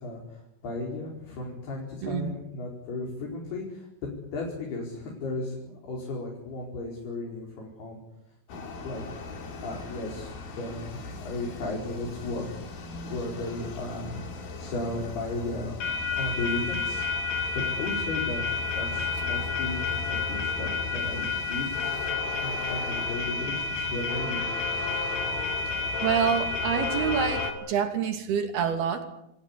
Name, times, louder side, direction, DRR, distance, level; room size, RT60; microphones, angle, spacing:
voice 1, 0.0-8.0 8.5-9.0 9.6-12.6 13.0-14.2 14.6-15.8 16.1-17.1 17.5-18.4 18.7-22.0 22.4-24.4, left 2 dB, 85° left, -2 dB, 6.9 m, -35 dB
sound 1, 8.5-27.5, left 4 dB, 70° left, 4.6 m, -31 dB
voice 2, 26.0-29.1, right 7 dB, 80° right, 7 dB, 4.5 m, -27 dB
28.0 x 15.5 x 9.9 m, 0.82 s
omnidirectional pair, 4.4 m